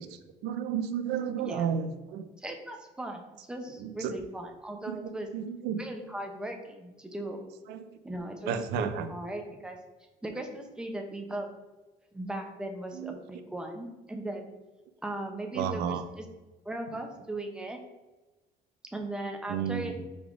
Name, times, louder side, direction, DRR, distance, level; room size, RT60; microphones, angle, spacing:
voice 1, 0.0-2.3 3.8-4.1 4.9-5.8 7.7-7.9 8.5-9.1 12.9-13.1 15.5-16.0 19.5-20.0, right 8 dB, 85° right, 10 dB, 0.4 m, -32 dB
voice 2, 2.4-5.3 5.8-7.4 8.0-9.8 10.2-11.5 12.1-14.5 15.0-16.2 16.6-17.8 18.9-19.9, right 1 dB, 5° right, 3 dB, 0.6 m, -38 dB
4.9 x 3.4 x 2.5 m, 1.1 s
cardioid pair, 110°, 17 cm